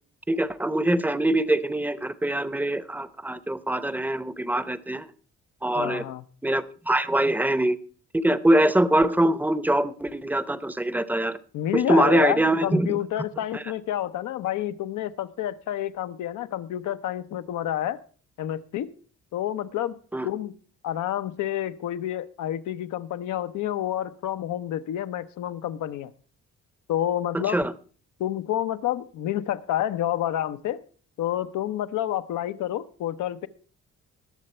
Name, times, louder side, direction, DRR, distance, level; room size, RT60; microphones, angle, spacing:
voice 1, 0.3-5.1 5.6-6.0 6.4-7.8 8.1-11.4 11.7-13.0 13.5-13.6 20.1-20.3 27.3-27.7, right 1 dB, 5° right, 15 dB, 0.7 m, -23 dB
voice 2, 5.7-6.2 11.5-18.0 18.4-18.9 19.3-20.0 20.2-20.5 20.8-26.1 26.9-27.6 28.2-30.8 31.2-33.5, left 12 dB, 80° left, 11 dB, 0.9 m, -29 dB
19.5 x 6.8 x 4.4 m, 0.40 s
cardioid pair, 90°, 30 cm